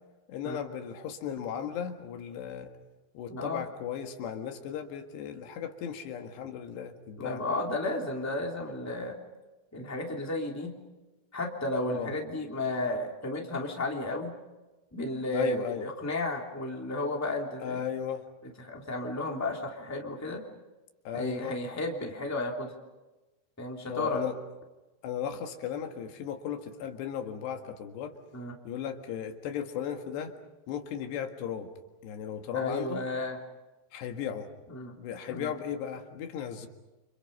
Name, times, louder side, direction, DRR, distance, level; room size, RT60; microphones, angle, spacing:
voice 1, 0.3-2.8 3.2-7.4 11.9-12.1 15.3-15.9 17.6-18.3 21.1-21.6 23.9-24.4 25.0-28.2 28.7-30.4 30.7-31.7 32.0-33.1 33.9-34.5 35.0-36.7, left 8 dB, 85° left, 5 dB, 3.9 m, -36 dB
voice 2, 3.3-3.6 7.2-9.2 9.7-10.8 11.3-14.3 14.9-17.8 18.6-20.4 21.1-22.7 23.6-24.2 28.3-28.5 32.5-33.4 34.7-34.9 35.3-35.5, left 2 dB, 5° left, 0 dB, 2.4 m, -33 dB
30.0 x 27.0 x 5.5 m, 1.1 s
omnidirectional pair, 4.7 m